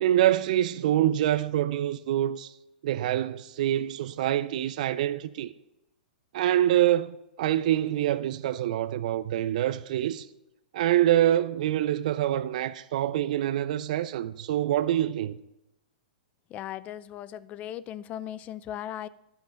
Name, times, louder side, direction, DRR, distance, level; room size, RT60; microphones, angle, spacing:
voice 1, 0.0-2.5 2.8-5.5 6.3-10.3 10.7-15.4, right 12 dB, 60° right, 0.5 m, -25 dB
voice 2, 16.5-19.1, left 11 dB, 30° left, 0.4 m, -37 dB
11.5 x 5.8 x 5.2 m
hypercardioid pair, 120°, 5 cm